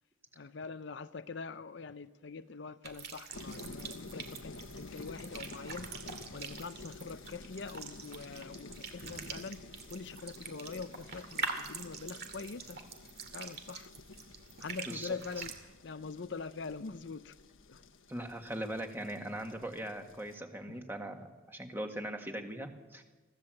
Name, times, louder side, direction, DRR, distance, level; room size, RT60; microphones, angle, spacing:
voice 1, 0.4-9.6 9.9-12.8 13.3-13.9 14.6-17.4 17.7-17.8, left 4 dB, 60° left, 0.6 m, -44 dB
sound 1, 2.8-15.6, right 5 dB, 50° right, 2.3 m, -44 dB
sound 2, 3.3-20.4, left 3 dB, 80° left, 1.3 m, -51 dB
voice 2, 18.1-23.0, right 1 dB, 10° right, 1.7 m, -40 dB
23.0 x 16.0 x 7.7 m
head